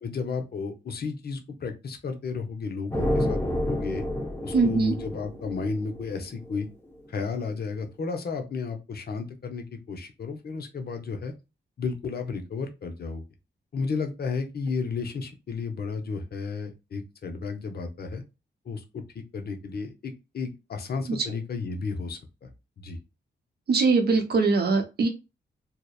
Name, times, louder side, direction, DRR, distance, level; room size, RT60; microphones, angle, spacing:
voice 1, 0.0-3.4 3.7-4.0 4.4-6.7 7.1-11.3 11.8-13.2 13.7-18.2 18.7-22.5 22.8-23.0, left 4 dB, 55° left, 5 dB, 0.6 m, -33 dB
sound 1, 2.9-6.6, left 1 dB, 10° left, 0.7 m, -29 dB
voice 2, 4.5-5.0 21.1-21.2 23.7-25.1, right 4 dB, 55° right, 4 dB, 0.7 m, -22 dB
2.8 x 2.0 x 2.3 m, 0.27 s
cardioid pair, 80°, 20 cm